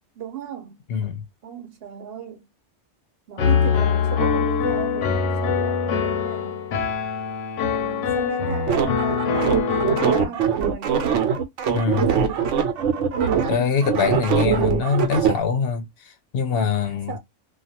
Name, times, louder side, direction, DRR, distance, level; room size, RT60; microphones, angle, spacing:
voice 1, 0.2-0.8 1.4-2.4 3.3-6.6 7.7-11.1 13.2-13.7 16.8-17.2, right 8 dB, 60° right, 0.8 m, -36 dB
voice 2, 0.9-1.2 11.7-12.1 13.4-17.2, left 6 dB, 60° left, 0.8 m, -23 dB
Piano, 3.4-10.2, left 6 dB, 85° left, 1.0 m, -23 dB
sound 1, 8.7-15.4, right 7 dB, 90° right, 1.0 m, -22 dB
2.4 x 2.3 x 2.7 m
omnidirectional pair, 1.2 m